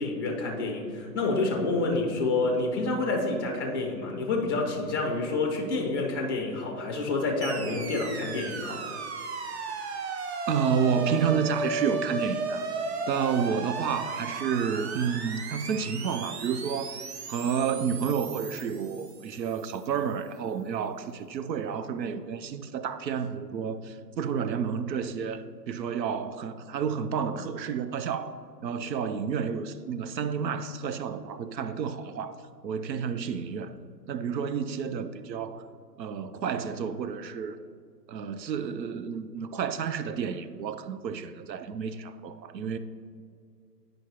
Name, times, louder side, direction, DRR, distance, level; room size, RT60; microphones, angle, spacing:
voice 1, 0.0-8.8, left 3 dB, 15° left, 0.4 m, -28 dB
sound 1, 7.4-19.7, right 3 dB, 40° right, 0.6 m, -35 dB
voice 2, 10.5-17.0 17.3-28.4 28.6-32.4 32.6-33.8 34.1-35.7 36.0-37.6 38.1-42.8, right 7 dB, 85° right, 0.6 m, -30 dB
9.4 x 5.1 x 2.9 m
hypercardioid pair, 135°, 50 cm